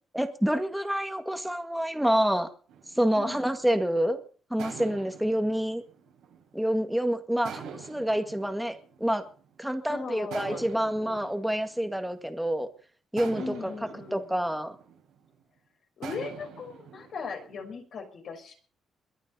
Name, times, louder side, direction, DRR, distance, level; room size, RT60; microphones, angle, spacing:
voice 1, 0.1-2.5 3.0-4.2 4.5-5.8 6.5-9.3 9.6-12.7 13.1-13.7 14.1-14.8, equal, 5° right, 1.9 m, -27 dB
sound 1, 2.7-4.0 4.6-6.8 7.4-9.6 10.3-12.6 13.2-15.4 16.0-17.6, right 7 dB, 85° right, 4.8 m, -46 dB
voice 2, 3.2-3.5 9.9-10.6 11.0-11.3 13.4-14.3 16.0-18.5, left 5 dB, 60° left, 5.6 m, -38 dB
22.0 x 10.0 x 5.5 m
cardioid pair, 90°, 0 cm